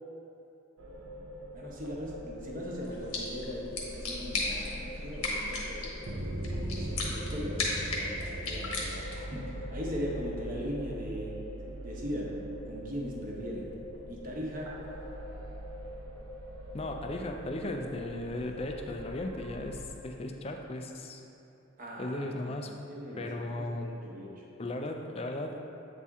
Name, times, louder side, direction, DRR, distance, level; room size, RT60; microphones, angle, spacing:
sound 1, 0.8-19.9, equal, 80° right, 0.8 m, -41 dB
voice 1, 1.5-6.0 6.7-11.4 11.8-12.4 12.7-13.7 14.1-14.7 21.8-22.6 22.9-24.5, equal, 40° right, -3 dB, 1.0 m, -39 dB
sound 2, 2.8-9.3, left 2 dB, 80° left, 1.2 m, -36 dB
voice 2, 16.7-21.2 22.0-22.8 23.2-23.9 24.6-25.7, left 1 dB, 30° left, 3 dB, 0.4 m, -36 dB
8.3 x 4.2 x 3.6 m, 2.8 s
head